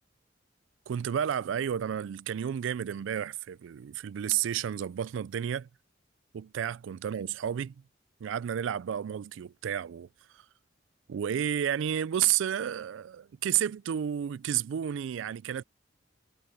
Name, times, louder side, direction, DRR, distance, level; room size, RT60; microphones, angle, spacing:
voice 1, 0.9-5.7 6.3-7.7 8.2-10.1 11.1-15.6, right 9 dB, 80° right, 0.3 m, -31 dB
head